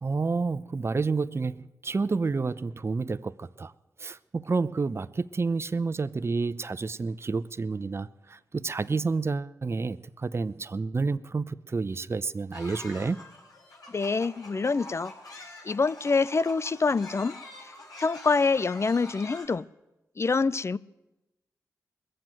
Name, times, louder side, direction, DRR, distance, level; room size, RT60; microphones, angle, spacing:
voice 1, 0.0-3.7 4.0-13.2, right 4 dB, 40° right, 0.6 m, -29 dB
sound 1, 12.5-19.5, left 2 dB, 70° left, 4.8 m, -46 dB
voice 2, 13.9-17.3 17.6-17.7 18.0-19.7 20.2-20.8, left 4 dB, 40° left, 0.5 m, -26 dB
20.5 x 7.6 x 9.0 m
supercardioid pair, 40°, 7 cm